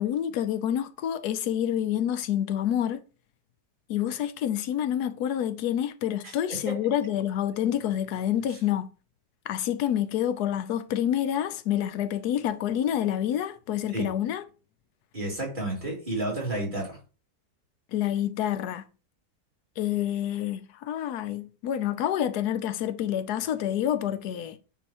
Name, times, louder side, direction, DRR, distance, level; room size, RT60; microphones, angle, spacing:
voice 1, 0.0-3.0 3.9-8.9 9.5-14.4 17.9-18.8 19.8-24.6, left 10 dB, 80° left, 1.2 m, -28 dB
voice 2, 6.2-6.8 13.9-14.1 15.1-17.0, right 1 dB, 30° right, 2.4 m, -31 dB
9.2 x 4.0 x 2.9 m
omnidirectional pair, 1.7 m